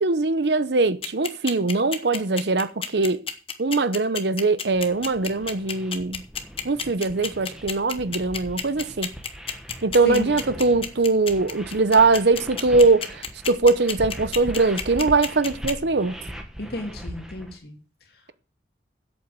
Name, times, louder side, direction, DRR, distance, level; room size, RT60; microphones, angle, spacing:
voice 1, 0.0-3.2 3.6-6.2 6.6-9.1 9.8-16.2, right 3 dB, 70° right, 0.8 m, -21 dB
sound 1, 1.0-15.7, left 7 dB, 30° left, 1.1 m, -30 dB
sound 2, 4.7-17.6, equal, 5° right, 1.5 m, -40 dB
voice 2, 16.6-17.8, left 1 dB, 60° left, 2.8 m, -31 dB
8.2 x 7.9 x 7.5 m
head